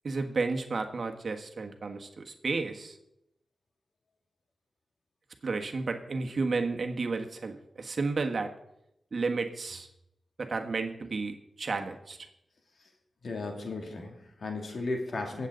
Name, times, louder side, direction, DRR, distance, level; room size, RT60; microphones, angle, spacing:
voice 1, 0.0-2.9 5.4-8.5 9.1-9.9 10.4-12.2, right 4 dB, 60° right, 5 dB, 1.4 m, -32 dB
voice 2, 13.2-15.5, left 3 dB, 65° left, 2 dB, 2.5 m, -35 dB
24.0 x 8.2 x 3.9 m, 0.83 s
cardioid pair, 70°, 0 cm